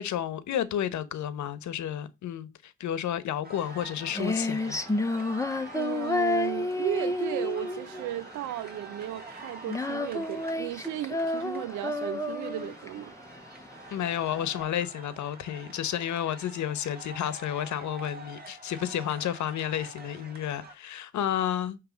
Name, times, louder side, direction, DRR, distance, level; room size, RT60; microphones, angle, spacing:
voice 1, 0.0-4.8 13.9-21.8, left 10 dB, 70° left, 1.0 m, -31 dB
sound 1, 3.4-20.7, right 3 dB, 30° right, 2.5 m, -47 dB
Female singing, 3.6-14.6, left 2 dB, 10° left, 0.9 m, -31 dB
voice 2, 5.7-13.1, right 13 dB, 75° right, 0.5 m, -35 dB
9.3 x 3.2 x 5.1 m
cardioid pair, 90°, 30 cm